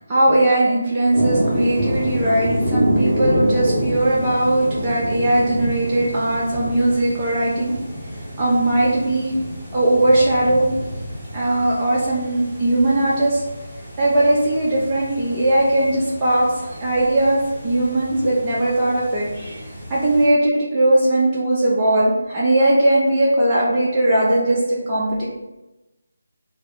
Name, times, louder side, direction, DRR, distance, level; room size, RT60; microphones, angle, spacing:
voice 1, 0.1-7.7 8.4-9.4 9.7-10.7 11.3-13.4 14.0-19.6 19.9-25.2, right 1 dB, 20° right, -8 dB, 0.7 m, -19 dB
sound 1, 1.1-20.3, equal, ahead, 1.1 m, -28 dB
4.6 x 2.1 x 3.8 m, 1.0 s
figure-of-eight pair, 155°, 0 cm